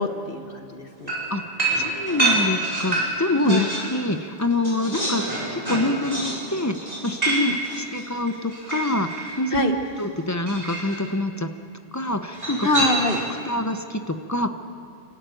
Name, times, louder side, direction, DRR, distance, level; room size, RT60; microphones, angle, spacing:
voice 1, 0.0-1.1 3.4-3.7 7.3-7.5 9.5-9.7 12.6-13.2, left 2 dB, 60° left, 5 dB, 1.5 m, -25 dB
sound 1, 1.1-4.0 4.3-9.4 10.4-11.0 12.3-13.4, right 2 dB, 35° right, 5.2 m, -27 dB
voice 2, 1.8-5.2 5.5-11.5 11.9-12.7 13.4-14.5, left 1 dB, 15° left, 7 dB, 0.9 m, -26 dB
29.0 x 13.0 x 9.3 m, 2.5 s
omnidirectional pair, 1.1 m